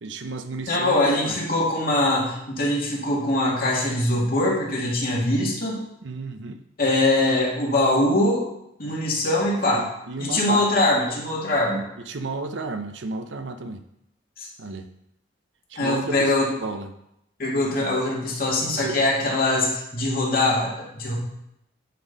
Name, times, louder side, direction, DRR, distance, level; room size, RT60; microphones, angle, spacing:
voice 1, 0.0-1.3 6.0-6.6 9.7-10.7 12.1-13.8 14.6-14.9 15.7-16.3 16.6-16.9 18.8-19.0 19.2-19.3, right 3 dB, 85° right, 8 dB, 0.7 m, -32 dB
voice 2, 0.7-5.8 6.8-8.5 8.8-9.9 10.2-11.8 14.4-14.5 15.8-16.5 17.4-21.2, left 1 dB, 55° left, -3 dB, 2.2 m, -22 dB
9.2 x 4.3 x 5.2 m, 0.80 s
head